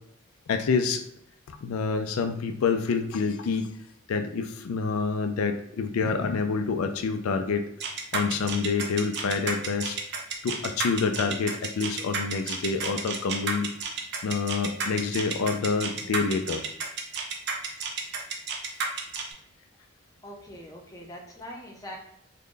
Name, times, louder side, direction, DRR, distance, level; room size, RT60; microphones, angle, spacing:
voice 1, 0.5-1.0 1.5-3.7 4.1-7.6 8.1-10.0 10.4-13.7 14.2-16.6, left 5 dB, 90° left, 7 dB, 0.4 m, -27 dB
sound 1, 7.8-19.3, right 5 dB, 55° right, 0.6 m, -31 dB
voice 2, 20.2-22.0, equal, 15° left, -1 dB, 0.6 m, -42 dB
3.7 x 2.1 x 3.7 m, 0.75 s
head